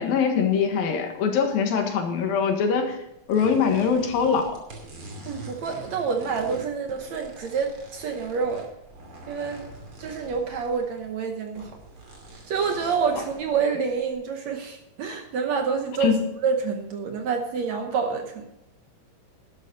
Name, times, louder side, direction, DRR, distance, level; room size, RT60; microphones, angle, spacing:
voice 1, 0.0-3.0 3.3-4.6 16.0-16.2, left 6 dB, 80° left, 4 dB, 3.4 m, -23 dB
sound 1, 3.2-11.1 11.4-14.1, right 2 dB, 40° right, 3.3 m, -44 dB
voice 2, 5.3-8.7 9.3-9.7 10.0-11.7 12.3-16.2 16.4-18.5, right 5 dB, 65° right, 4 dB, 1.9 m, -27 dB
12.0 x 11.5 x 4.0 m, 0.86 s
omnidirectional pair, 4.1 m